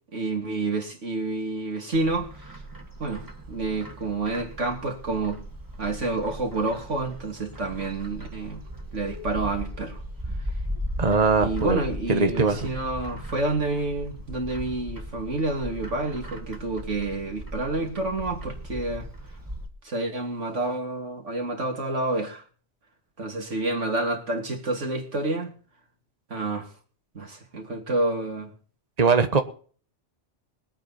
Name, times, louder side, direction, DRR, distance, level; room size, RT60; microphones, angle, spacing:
voice 1, 0.1-2.5 3.0-5.4 5.8-8.6 8.9-10.0 11.4-19.1 19.8-22.4 23.2-25.5 26.3-26.7 27.1-28.5, right 2 dB, 85° right, 3.2 m, -29 dB
Bird, 1.9-19.7, equal, 15° right, 1.6 m, -37 dB
voice 2, 11.0-11.8 12.1-12.7 29.0-29.4, right 4 dB, 35° right, 1.5 m, -21 dB
21.5 x 8.8 x 4.3 m
omnidirectional pair, 1.2 m